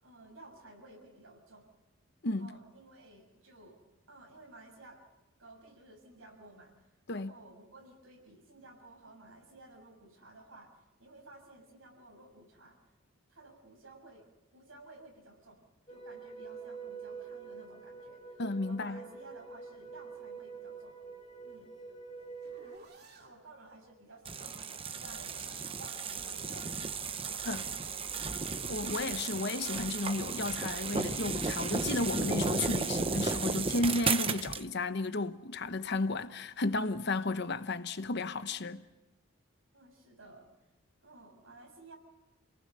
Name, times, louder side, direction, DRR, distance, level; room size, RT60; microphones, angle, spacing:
voice 1, 0.0-1.7 2.4-3.8 4.1-5.0 5.4-6.7 7.1-10.7 11.0-12.8 13.3-14.2 14.5-15.6 15.9-20.9 21.4-21.7 23.1-26.9 27.2-28.3 39.7-40.5 41.0-42.0, right 2 dB, 75° right, 6.8 m, -54 dB
sound 1, 15.9-22.8, right 5 dB, 30° left, 1.5 m, -46 dB
voice 2, 18.4-19.0 27.5-27.6 28.7-38.8, left 2 dB, 55° left, 0.9 m, -33 dB
sound 2, 21.6-23.4 24.8-26.0 27.4-29.1 30.9-32.0, right 3 dB, 50° right, 2.8 m, -57 dB
sound 3, 24.2-34.6, right 4 dB, 25° right, 0.9 m, -34 dB
28.0 x 19.0 x 6.8 m
head